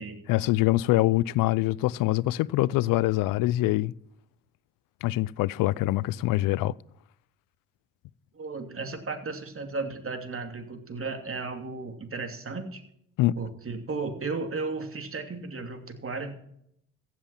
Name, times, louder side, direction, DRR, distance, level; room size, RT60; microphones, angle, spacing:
voice 1, 0.3-3.9 5.0-6.8 13.2-13.4, left 17 dB, 70° left, 0.5 m, -24 dB
voice 2, 8.3-12.8 13.4-16.3, right 3 dB, 40° right, 2.8 m, -34 dB
15.5 x 7.5 x 5.8 m
hypercardioid pair, 55°, 34 cm